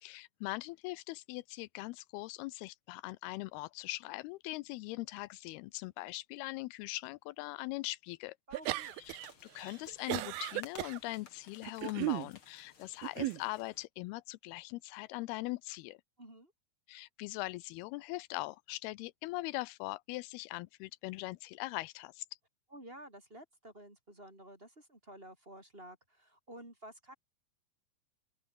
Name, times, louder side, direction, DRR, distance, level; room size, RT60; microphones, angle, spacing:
voice 1, 0.0-8.4 9.1-9.2 9.6-16.0 16.9-22.2, left 20 dB, 85° left, 2.5 m, -41 dB
voice 2, 8.5-8.9 16.2-16.5 22.7-27.1, right 1 dB, 15° right, 4.5 m, -52 dB
sound 1, 8.5-9.3 9.6-11.0 11.6-12.3 13.0-13.4, right 18 dB, 80° right, 2.5 m, -35 dB
sound 2, 8.6-13.9, left 6 dB, 35° left, 3.0 m, -56 dB
open air
omnidirectional pair, 4.5 m